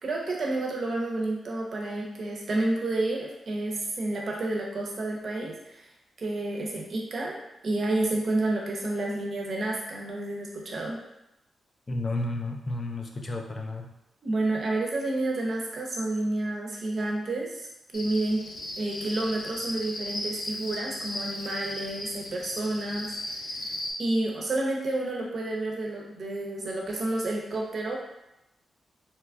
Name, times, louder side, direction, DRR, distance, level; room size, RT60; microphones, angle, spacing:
voice 1, 0.0-5.9 6.2-7.4 7.6-11.0 14.2-17.7 17.9-18.5 18.8-23.1 23.5-23.7 24.0-28.0, right 2 dB, 50° right, -1 dB, 0.7 m, -30 dB
voice 2, 11.9-13.9, left 2 dB, 30° left, 2 dB, 0.3 m, -32 dB
Cricket, 17.9-23.9, left 1 dB, 70° left, 0.6 m, -36 dB
2.9 x 2.3 x 3.4 m, 0.88 s
wide cardioid pair, 120°, 0 cm